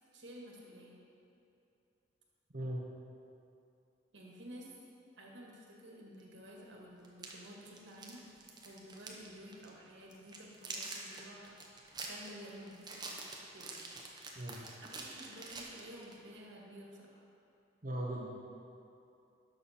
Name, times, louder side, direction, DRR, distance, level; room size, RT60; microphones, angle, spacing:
voice 1, 0.1-1.0 4.1-4.7 5.2-11.5 12.0-13.2 13.5-13.8 14.8-17.2, equal, 80° right, -2 dB, 1.8 m, -52 dB
sound 1, 6.2-6.3 7.0-9.3 9.5-9.7 10.1-16.2, right 3 dB, 20° right, 1.0 m, -46 dB
voice 2, 17.8-18.3, right 1 dB, 45° right, -5 dB, 1.0 m, -38 dB
12.0 x 6.5 x 4.3 m, 2.8 s
head